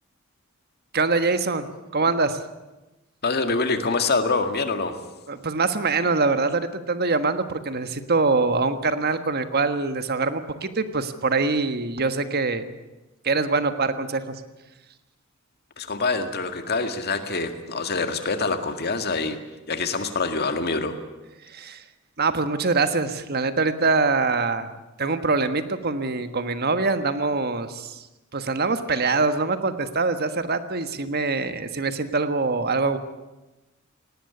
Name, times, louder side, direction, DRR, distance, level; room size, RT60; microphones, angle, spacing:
voice 1, 0.9-2.4 5.3-12.7 13.2-14.3 21.5-21.8 22.2-24.7 25.0-28.0 28.3-33.0, right 3 dB, 50° right, 10 dB, 1.4 m, -24 dB
voice 2, 3.2-4.9 15.8-19.4 19.7-21.0, left 3 dB, 50° left, 7 dB, 2.0 m, -25 dB
19.0 x 18.0 x 9.6 m, 1.1 s
head